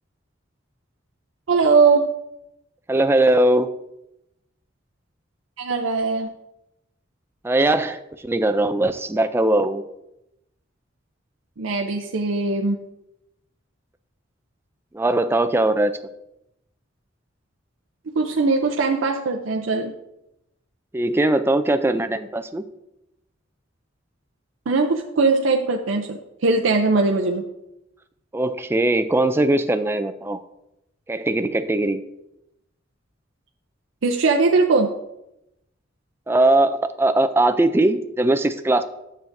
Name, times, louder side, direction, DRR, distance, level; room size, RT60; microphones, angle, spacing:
voice 1, 1.5-2.0 5.6-6.3 11.6-12.8 18.1-19.9 24.7-27.4 34.0-34.9, right 4 dB, 85° right, 1 dB, 0.6 m, -20 dB
voice 2, 2.9-3.7 7.4-9.8 14.9-16.0 20.9-22.6 28.3-30.4 31.1-32.0 36.3-38.8, right 2 dB, 10° right, 10 dB, 0.3 m, -20 dB
9.4 x 7.3 x 2.6 m, 0.87 s
head